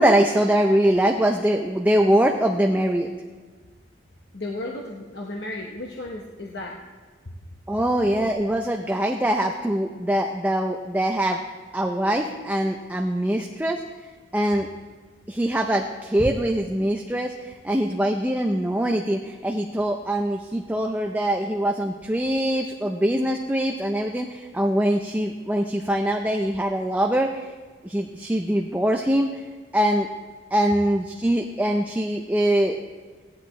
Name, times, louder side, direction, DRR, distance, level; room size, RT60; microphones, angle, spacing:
voice 1, 0.0-3.1 7.7-11.4 11.7-13.8 14.3-14.7 15.3-27.5 27.8-29.4 29.7-30.1 30.5-32.8, right 1 dB, 10° right, 2 dB, 0.5 m, -23 dB
voice 2, 4.3-6.8, left 2 dB, 60° left, -1 dB, 0.9 m, -34 dB
16.0 x 11.0 x 3.2 m, 1.4 s
head